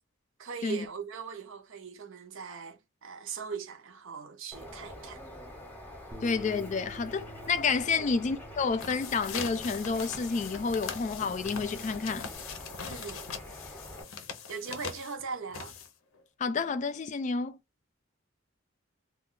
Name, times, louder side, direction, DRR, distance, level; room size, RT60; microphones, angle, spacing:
voice 1, 0.4-5.2 7.9-8.1 12.8-13.3 14.5-15.7, right 5 dB, 75° right, 0.6 m, -40 dB
Bird, 4.5-14.0, left 1 dB, 10° left, 0.7 m, -46 dB
Bass guitar, 6.1-12.4, right 1 dB, 25° right, 0.6 m, -51 dB
voice 2, 6.2-12.3 16.4-17.6, left 4 dB, 35° left, 0.3 m, -30 dB
sound 1, 8.6-16.2, left 6 dB, 85° left, 0.6 m, -41 dB
2.3 x 2.2 x 3.7 m
head